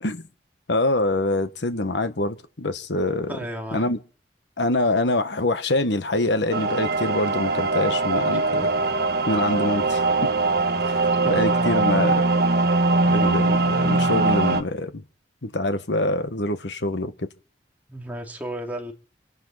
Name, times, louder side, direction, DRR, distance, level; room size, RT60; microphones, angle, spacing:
voice 1, 0.7-3.4 3.7-4.0 4.6-8.7 9.3-10.0 11.3-12.3 13.0-15.0 15.4-17.3, left 2 dB, 80° left, 1.4 m, -25 dB
voice 2, 3.3-3.9 11.2-12.2 17.9-18.9, right 1 dB, 10° right, 2.9 m, -34 dB
sound 1, 6.5-14.6, right 3 dB, 65° right, 1.4 m, -21 dB
27.0 x 11.5 x 4.2 m
head